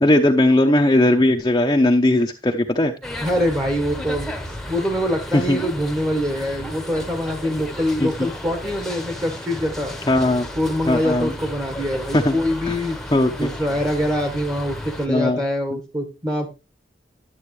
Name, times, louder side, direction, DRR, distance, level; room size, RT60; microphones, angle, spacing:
voice 1, 0.0-2.9 5.3-5.6 8.0-8.1 10.1-10.5 10.9-11.3 12.1-12.3 12.7-12.8 13.1-13.5 15.1-15.4, left 1 dB, 20° left, 2 dB, 0.7 m, -18 dB
sound 1, 3.0-15.1, left 1 dB, ahead, 1.0 m, -33 dB
voice 2, 3.2-9.9 10.5-13.0 13.4-16.5, equal, 20° right, 4 dB, 1.3 m, -24 dB
11.5 x 7.8 x 3.2 m, 0.27 s
head